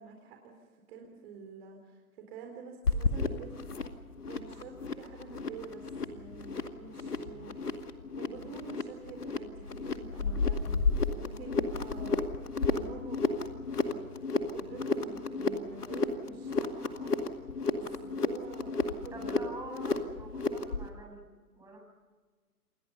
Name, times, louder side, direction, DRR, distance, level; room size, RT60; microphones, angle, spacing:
voice 1, 0.0-3.6 4.2-7.5 8.2-10.8 11.1-12.2 12.6-13.5 13.8-14.0 14.5-17.2 17.7-19.4, right 5 dB, 40° right, 3 dB, 4.0 m, -48 dB
sound 1, 2.8-20.9, left 3 dB, 80° left, 2.3 m, -33 dB
voice 2, 19.1-21.3 21.5-21.8, right 1 dB, 5° right, -1 dB, 8.0 m, -46 dB
28.5 x 22.5 x 5.6 m, 1.4 s
figure-of-eight pair, 125°, 46 cm